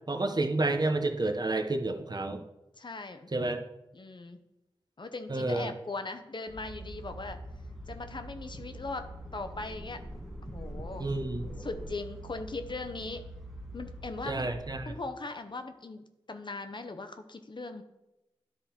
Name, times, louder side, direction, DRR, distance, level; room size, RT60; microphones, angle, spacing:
voice 1, 0.1-2.4 3.3-3.6 5.3-5.7 11.0-11.4 14.2-14.9, right 2 dB, 40° right, 5 dB, 0.8 m, -30 dB
voice 2, 2.7-3.3 3.9-4.4 5.0-7.4 7.9-10.0 10.4-11.1 11.6-13.2 13.7-14.5 14.9-17.8, left 3 dB, 50° left, 8 dB, 0.6 m, -39 dB
sound 1, 6.5-14.9, right 1 dB, ahead, 1.3 m, -45 dB
sound 2, 7.5-11.9, equal, 30° left, 1.5 m, -48 dB
10.5 x 3.7 x 4.3 m, 0.95 s
wide cardioid pair, 55°, 10 cm